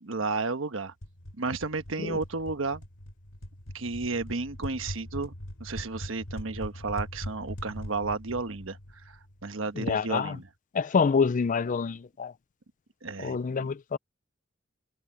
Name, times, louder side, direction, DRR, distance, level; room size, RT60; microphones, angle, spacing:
voice 1, 0.0-0.9 1.3-2.8 3.7-5.3 5.6-10.5 13.0-13.7, right 3 dB, 70° right, 1.2 m, -33 dB
sound 1, 1.0-9.7, equal, 80° left, 3.3 m, -41 dB
voice 2, 9.8-10.3 10.7-12.3 13.2-14.0, left 5 dB, 40° left, 0.4 m, -27 dB
head